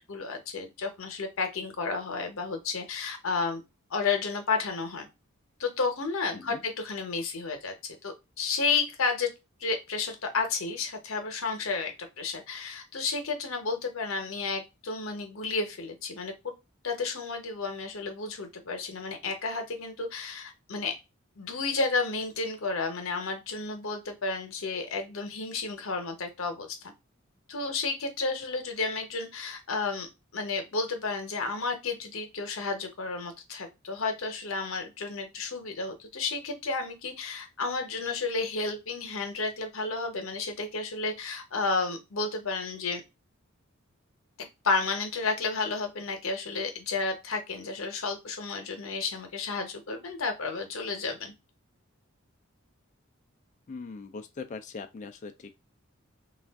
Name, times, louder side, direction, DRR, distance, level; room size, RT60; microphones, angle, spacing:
voice 1, 0.0-3.6 3.9-5.1 5.6-9.3 9.6-16.5 16.8-20.9 21.4-26.9 27.5-30.1 30.3-43.0 44.6-51.3, left 4 dB, 80° left, 0.8 m, -32 dB
voice 2, 6.3-6.6 53.7-55.7, left 4 dB, 35° left, 0.3 m, -41 dB
2.4 x 2.3 x 3.4 m
head